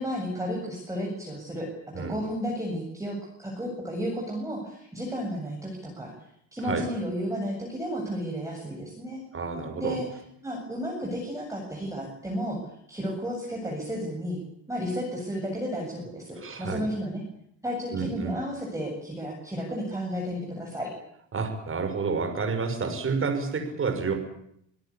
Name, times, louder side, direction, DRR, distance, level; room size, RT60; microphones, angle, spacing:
voice 1, 0.0-1.7 2.0-6.1 6.5-9.2 9.8-10.0 10.4-12.6 12.9-14.4 14.7-17.2 17.6-20.9, equal, 5° right, -2 dB, 7.6 m, -32 dB
voice 2, 9.3-10.0 16.4-16.9 17.9-18.4 21.3-24.1, right 5 dB, 30° right, 5 dB, 6.1 m, -29 dB
26.5 x 17.5 x 8.6 m, 0.72 s
cardioid pair, 120°, 45 cm